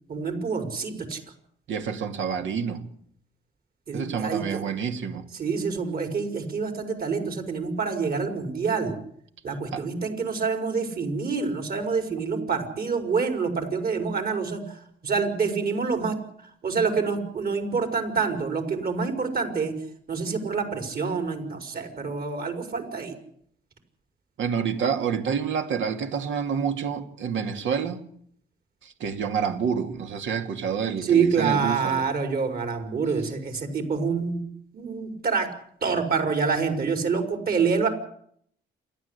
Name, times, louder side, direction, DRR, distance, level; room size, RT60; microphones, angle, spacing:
voice 1, 0.1-1.2 3.9-4.6 5.4-9.0 9.4-19.7 20.1-23.2 31.0-34.4 34.7-35.5 35.8-37.9, right 5 dB, 50° right, 5.3 m, -27 dB
voice 2, 1.7-2.8 3.9-5.2 9.7-9.8 24.4-28.0 28.8-32.0, right 7 dB, 70° right, 2.5 m, -28 dB
28.0 x 12.0 x 8.3 m
cardioid pair, 90°, 20 cm